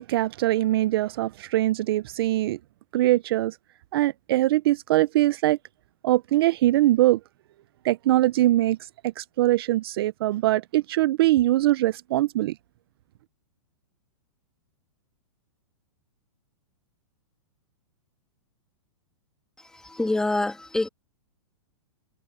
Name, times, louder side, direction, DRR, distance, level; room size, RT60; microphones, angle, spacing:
voice 1, 0.0-2.6 2.9-3.6 3.9-5.6 6.0-7.2 7.8-12.6, right 15 dB, 45° right, 0.5 m, -22 dB
voice 2, 19.6-20.9, left 2 dB, 5° left, 1.5 m, -26 dB
hypercardioid pair, 155°, 17 cm